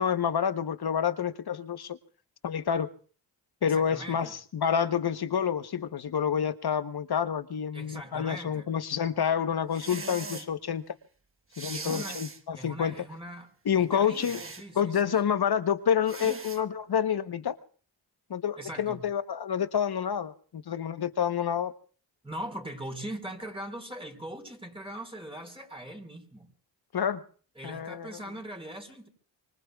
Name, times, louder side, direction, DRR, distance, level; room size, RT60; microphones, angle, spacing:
voice 1, 0.0-2.0 2.4-2.9 3.6-10.8 11.6-12.9 13.6-14.4 14.8-17.6 18.3-21.7 26.9-27.2 27.6-28.1, left 8 dB, 55° left, 11 dB, 1.0 m, -28 dB
voice 2, 3.6-4.3 7.7-8.7 11.7-12.2 12.5-13.5 13.8-15.2 18.6-19.0 22.2-26.5 27.5-29.1, right 1 dB, 10° right, 2 dB, 4.6 m, -41 dB
sound 1, 9.7-10.5 11.5-12.4 14.1-14.7 16.1-16.6, right 3 dB, 30° right, 1.2 m, -39 dB
25.0 x 24.5 x 2.3 m, 0.42 s
cardioid pair, 55°, 46 cm